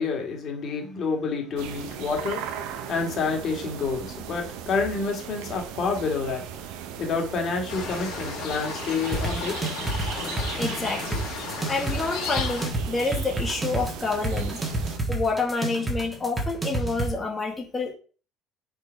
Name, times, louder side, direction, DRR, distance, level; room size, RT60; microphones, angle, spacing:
voice 1, 0.0-2.4 2.9-6.4 7.0-9.7, left 4 dB, 45° left, 2.0 m, -28 dB
sound 1, 1.6-15.0, right 9 dB, 80° right, 0.8 m, -38 dB
sound 2, 7.7-12.7, left 6 dB, 75° left, 2.2 m, -34 dB
sound 3, 9.1-17.1, right 2 dB, 15° right, 1.5 m, -29 dB
voice 2, 10.6-11.2 11.7-17.9, left 3 dB, 15° left, 1.5 m, -28 dB
4.8 x 4.4 x 4.6 m
cardioid pair, 115°, 0 cm